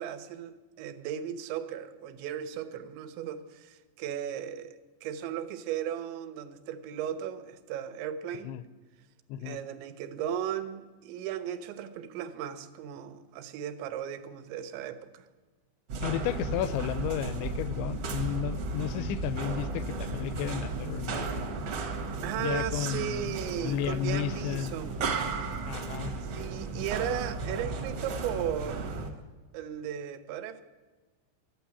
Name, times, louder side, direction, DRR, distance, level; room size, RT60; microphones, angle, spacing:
voice 1, 0.0-8.6 9.4-15.2 22.2-25.1 26.2-29.2 29.5-30.6, right 9 dB, 90° right, 10 dB, 3.1 m, -36 dB
sound 1, 15.9-29.1, right 3 dB, 65° right, 1.5 m, -34 dB
voice 2, 16.0-21.3 22.4-23.4 23.6-24.8 25.6-26.1, left 11 dB, 90° left, 15 dB, 2.9 m, -33 dB
12.5 x 9.0 x 8.2 m, 1.3 s
omnidirectional pair, 5.0 m